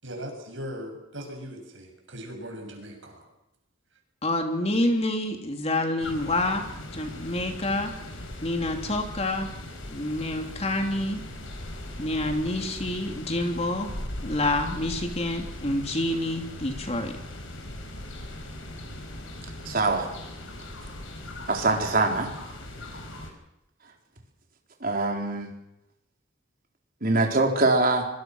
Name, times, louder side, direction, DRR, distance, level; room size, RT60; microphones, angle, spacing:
voice 1, 0.0-3.2, equal, 70° right, 3 dB, 7.3 m, -39 dB
voice 2, 4.2-6.6 6.9-7.9 8.4-9.5 9.9-11.2 12.0-13.9 14.2-17.1, left 1 dB, 30° left, 4 dB, 3.0 m, -27 dB
sound 1, 6.0-23.3, left 1 dB, 80° left, 5.3 m, -39 dB
voice 3, 19.7-20.1 21.5-22.3 24.8-25.5 27.0-28.0, right 2 dB, 45° right, 2 dB, 4.3 m, -23 dB
25.0 x 24.5 x 6.3 m, 0.87 s
head